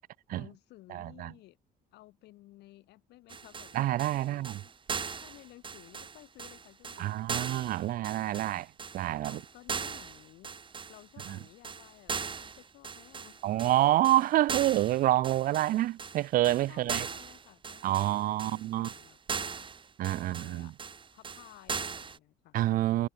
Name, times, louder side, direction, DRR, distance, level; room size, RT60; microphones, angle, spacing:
voice 1, 0.3-1.6 1.9-8.7 9.2-10.6 10.9-13.7 16.5-19.7 20.1-20.8 21.1-23.1, left 17 dB, 80° left, 7.4 m, -56 dB
voice 2, 0.9-1.3 3.7-4.6 7.0-8.7 8.9-9.4 13.4-17.1 17.8-18.9 20.0-20.7 22.5-23.1, right 14 dB, 55° right, 0.4 m, -27 dB
sound 1, 3.3-22.2, right 5 dB, 30° right, 2.0 m, -39 dB
cardioid pair, 110°, 17 cm